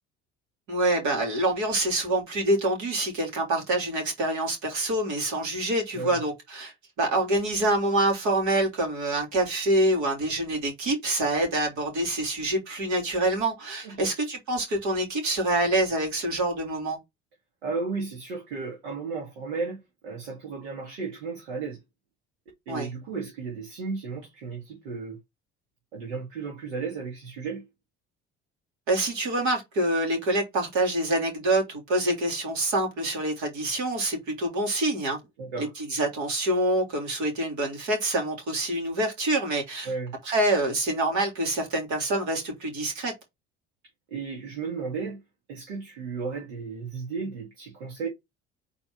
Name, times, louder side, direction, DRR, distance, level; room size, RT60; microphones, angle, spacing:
voice 1, 0.7-6.7 7.0-17.0 22.7-22.9 28.9-35.2 35.6-39.9 40.2-43.1, right 1 dB, 65° right, 3.2 m, -26 dB
voice 2, 17.6-21.8 22.7-25.2 25.9-27.6 35.4-35.7 39.8-40.2 44.1-45.2 45.5-48.1, right 4 dB, 90° right, 2.2 m, -34 dB
4.6 x 4.1 x 5.6 m
hypercardioid pair, 65°, 31 cm